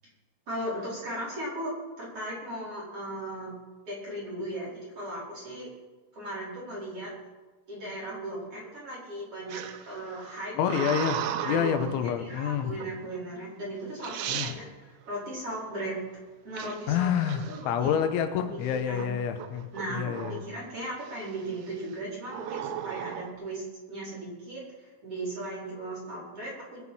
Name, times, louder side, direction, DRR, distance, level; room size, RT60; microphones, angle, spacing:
voice 1, 0.5-3.5 3.8-5.7 6.1-7.1 7.7-16.0 16.4-17.1 17.5-18.0 18.5-19.1 19.7-26.8, right 1 dB, 30° right, -6 dB, 5.7 m, -37 dB
sound 1, 9.5-12.0 12.8-13.2 13.7-13.8 14.0-14.6 16.6-18.2 18.6-19.1 19.4-20.6 21.0-21.5 22.3-23.3, right 10 dB, 80° right, 2.2 m, -36 dB
voice 2, 10.6-11.2 11.5-12.7 14.3-14.5 16.9-20.4, left 8 dB, 90° left, 7 dB, 3.5 m, -28 dB
22.5 x 8.5 x 5.6 m, 1.2 s
omnidirectional pair, 5.3 m